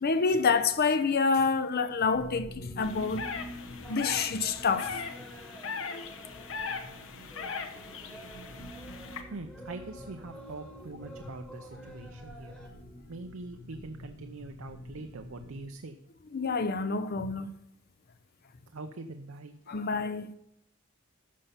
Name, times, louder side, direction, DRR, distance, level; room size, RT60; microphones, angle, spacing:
voice 1, 0.0-3.3 3.9-5.1 5.9-6.1 16.3-17.5 19.7-20.3, left 4 dB, 50° left, 0.6 m, -27 dB
sound 1, 2.1-15.6, left 1 dB, 85° left, 4.7 m, -47 dB
sound 2, 2.8-9.2, left 5 dB, 70° left, 1.2 m, -40 dB
sound 3, 3.8-12.7, right 1 dB, 5° left, 1.3 m, -51 dB
voice 2, 9.3-12.6 13.1-16.0 18.7-19.7, right 3 dB, 75° right, 0.7 m, -43 dB
13.5 x 5.5 x 5.6 m
head